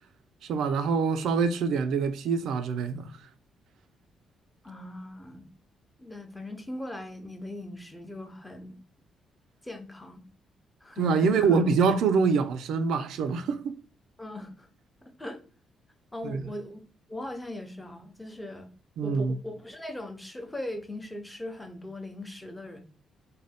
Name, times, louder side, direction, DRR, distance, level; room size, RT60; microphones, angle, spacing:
voice 1, 0.5-3.1 11.0-13.8 16.2-16.4 19.0-19.4, right 5 dB, 75° right, 0.4 m, -25 dB
voice 2, 4.6-5.5 6.0-8.8 9.6-10.2 10.8-11.6 14.2-14.7 15.0-15.4 16.1-16.8 17.1-18.7 19.0-22.8, left 1 dB, 10° left, 0.7 m, -39 dB
2.6 x 2.2 x 3.3 m
cardioid pair, 90°, 0 cm